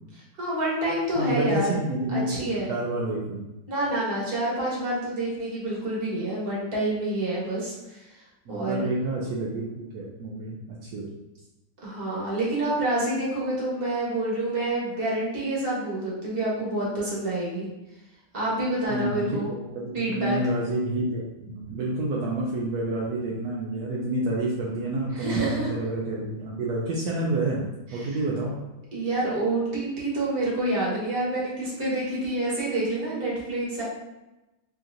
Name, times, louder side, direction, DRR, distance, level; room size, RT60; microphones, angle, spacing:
voice 1, 0.4-1.8 2.1-2.7 3.7-8.0 8.5-8.9 11.8-17.7 18.3-19.5 19.9-20.4 25.1-25.7 27.9-28.1 28.9-33.8, right 1 dB, 35° right, -6 dB, 1.5 m, -27 dB
voice 2, 1.1-3.4 8.5-11.1 18.9-27.6 27.9-28.6, right 2 dB, 75° right, -4 dB, 1.2 m, -29 dB
4.8 x 2.9 x 2.6 m, 0.99 s
omnidirectional pair, 1.7 m